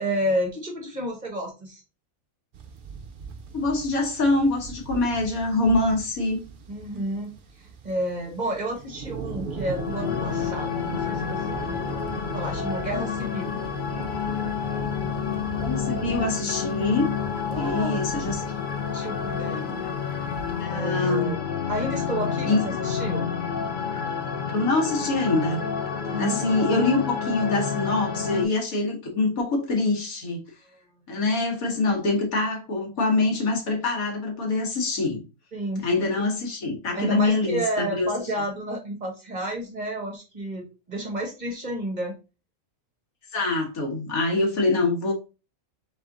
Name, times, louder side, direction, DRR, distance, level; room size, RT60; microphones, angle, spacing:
voice 1, 0.0-1.8 6.7-7.3 7.6-12.0 12.3-13.6 17.5-18.1 18.9-19.9 20.6-23.3 26.1-26.6 35.5-36.2 36.9-42.1, right 1 dB, 35° right, 2 dB, 1.1 m, -31 dB
sound 1, 2.5-20.7, right 5 dB, 55° right, 0.6 m, -39 dB
voice 2, 3.5-6.4 15.6-17.2 17.6-18.5 20.6-21.3 22.4-22.6 24.5-25.6 26.2-30.4 31.1-35.2 35.8-37.6 38.0-38.1 43.3-45.1, left 2 dB, 85° left, 1 dB, 1.8 m, -24 dB
sound 2, 9.5-28.5, left 7 dB, 45° left, 0.7 m, -29 dB
3.5 x 3.5 x 3.8 m, 0.30 s
omnidirectional pair, 1.4 m